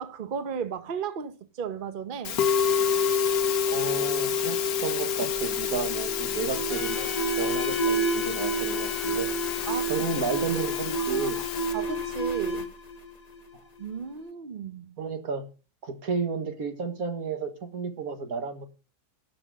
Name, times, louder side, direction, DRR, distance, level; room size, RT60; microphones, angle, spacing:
voice 1, 0.0-2.4 9.6-9.9 11.0-11.3 11.7-12.7 13.8-14.9, right 7 dB, 40° right, 0.9 m, -34 dB
Musical instrument, 2.2-11.7, left 7 dB, 90° left, 1.4 m, -28 dB
voice 2, 3.7-9.3 9.9-11.4 15.0-15.5 15.8-18.6, right 4 dB, 85° right, 2.0 m, -32 dB
Alarm, 5.2-13.8, right 2 dB, 30° left, 1.3 m, -30 dB
Trumpet, 6.7-11.9, left 3 dB, 45° left, 3.0 m, -43 dB
11.5 x 6.0 x 7.5 m
omnidirectional pair, 1.5 m